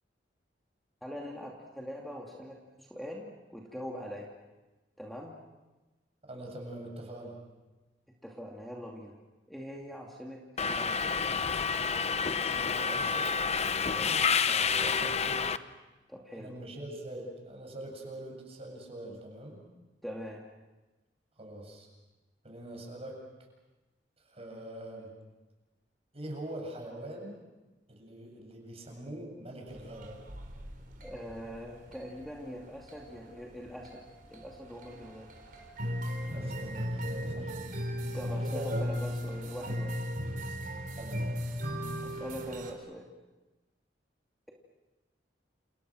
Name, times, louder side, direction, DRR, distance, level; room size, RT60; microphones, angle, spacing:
voice 1, 1.0-4.3 5.0-5.4 8.2-9.1 9.5-11.0 16.1-16.6 20.0-20.4 31.0-34.0 34.3-35.3 38.1-40.0 42.0-43.1, equal, ahead, -2 dB, 2.6 m, -42 dB
voice 2, 6.3-7.4 12.3-13.3 13.9-15.6 16.4-19.6 21.3-21.9 22.4-23.2 24.2-25.1 26.1-27.4 27.9-30.2 36.2-37.6 38.1-38.8 41.0-41.3, right 1 dB, 35° right, 1 dB, 7.9 m, -43 dB
Subway metro underground, 10.6-15.6, left 5 dB, 35° left, 0.9 m, -29 dB
sound 1, 29.7-42.7, equal, 50° right, 4.3 m, -37 dB
29.5 x 29.0 x 6.3 m, 1.1 s
head